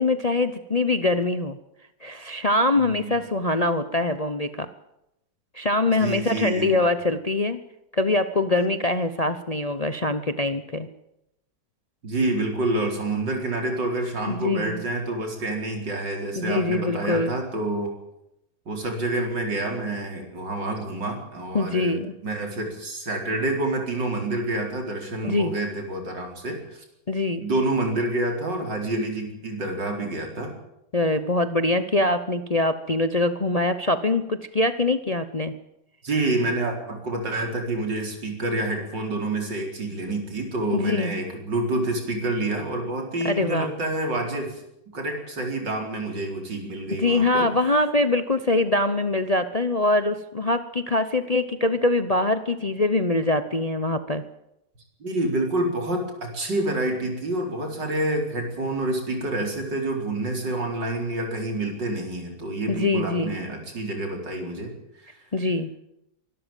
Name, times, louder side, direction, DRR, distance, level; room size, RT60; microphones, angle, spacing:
voice 1, 0.0-1.6 2.0-4.7 5.5-7.6 7.9-10.9 14.3-14.8 16.4-17.3 21.5-22.1 25.2-25.5 27.1-27.4 30.9-35.5 40.7-41.1 43.2-43.7 46.9-54.2 62.7-63.4 65.3-65.7, left 2 dB, 35° left, 11 dB, 0.7 m, -23 dB
voice 2, 2.8-3.1 5.9-6.8 12.0-17.9 18.7-26.8 27.4-30.5 36.0-44.6 44.9-47.5 55.0-64.7 65.0-65.2, right 2 dB, 85° right, 3 dB, 5.1 m, -28 dB
24.0 x 12.5 x 9.2 m, 0.85 s
omnidirectional pair, 1.9 m